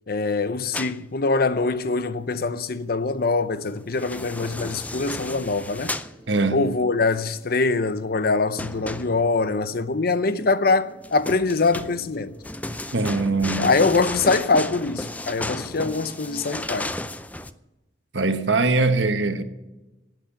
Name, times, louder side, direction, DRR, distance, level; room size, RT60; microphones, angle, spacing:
voice 1, 0.1-6.0 6.5-12.3 13.6-16.9, left 3 dB, 55° left, 0.7 m, -23 dB
sound 1, 0.7-1.0 3.8-6.1 8.6-9.5 11.0-17.5, left 1 dB, 10° left, 0.5 m, -33 dB
sound 2, 4.2-16.6, equal, 25° left, 4.0 m, -47 dB
voice 2, 6.3-6.7 12.9-13.7 18.1-19.4, right 3 dB, 80° right, 1.3 m, -22 dB
11.5 x 9.1 x 9.9 m
head